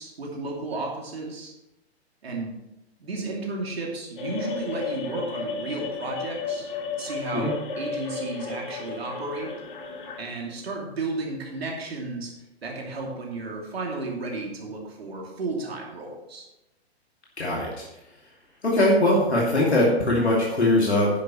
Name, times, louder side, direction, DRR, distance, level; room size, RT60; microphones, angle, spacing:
voice 1, 0.0-1.5 2.2-2.5 3.0-6.7 7.0-9.5 10.2-12.3 12.6-16.5, right 3 dB, 65° right, -1 dB, 2.9 m, -33 dB
sound 1, 4.2-10.2, left 4 dB, 50° left, 2.0 m, -33 dB
voice 2, 17.4-17.8 18.6-21.1, left 1 dB, 80° left, -4 dB, 2.6 m, -21 dB
11.0 x 10.5 x 3.2 m, 0.91 s
figure-of-eight pair, 115°, 33 cm